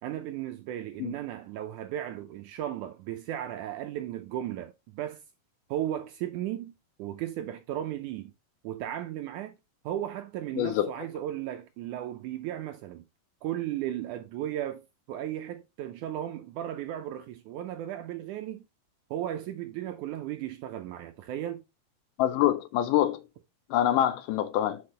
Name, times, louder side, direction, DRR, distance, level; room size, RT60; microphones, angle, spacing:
voice 1, 0.0-5.2 5.7-6.7 7.0-8.3 8.6-9.6 9.8-13.0 13.4-18.7 19.1-21.6, right 12 dB, 80° right, 1.8 m, -35 dB
voice 2, 10.6-11.1 22.2-23.2 23.7-24.8, left 12 dB, 80° left, 2.0 m, -25 dB
6.1 x 5.8 x 3.2 m
omnidirectional pair, 4.0 m